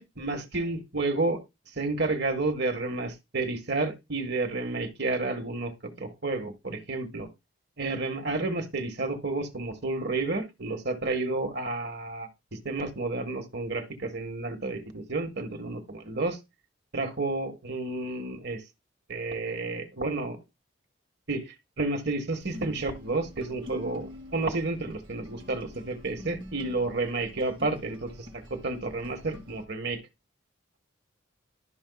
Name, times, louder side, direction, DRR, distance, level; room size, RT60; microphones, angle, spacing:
voice 1, 0.0-1.4 1.8-7.3 7.8-12.3 12.6-16.4 16.9-18.6 19.1-20.4 21.3-30.0, right 3 dB, 55° right, 1.4 m, -31 dB
sound 1, 22.4-29.6, left 1 dB, 25° right, 1.8 m, -46 dB
12.0 x 5.4 x 2.3 m
head